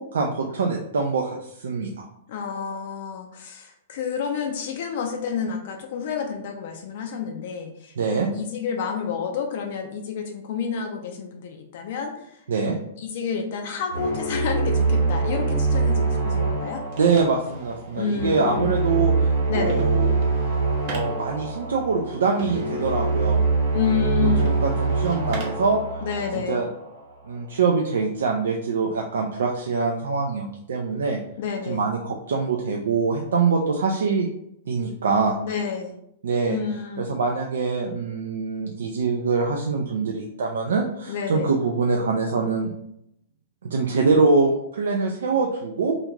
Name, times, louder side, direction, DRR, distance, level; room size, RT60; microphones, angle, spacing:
voice 1, 0.0-2.1 8.0-8.3 12.5-12.8 17.0-19.1 19.5-20.2 20.9-23.5 24.2-25.8 26.3-26.7 27.3-31.2 31.7-34.3 34.7-35.4 36.2-36.6 37.0-42.7 43.6-45.9, right 4 dB, 70° right, 1 dB, 0.3 m, -24 dB
voice 2, 2.3-12.4 13.0-16.8 17.9-18.8 19.5-19.8 23.7-24.5 26.0-26.6 31.4-31.8 35.4-35.9 36.5-37.1 41.1-41.5, left 6 dB, 55° left, 4 dB, 0.4 m, -29 dB
sound 1, 13.9-27.0, right 3 dB, 85° right, 0.9 m, -24 dB
sound 2, 16.5-25.7, right 3 dB, 45° right, 0.7 m, -42 dB
2.4 x 2.4 x 3.1 m, 0.77 s
figure-of-eight pair, 105°, 0 cm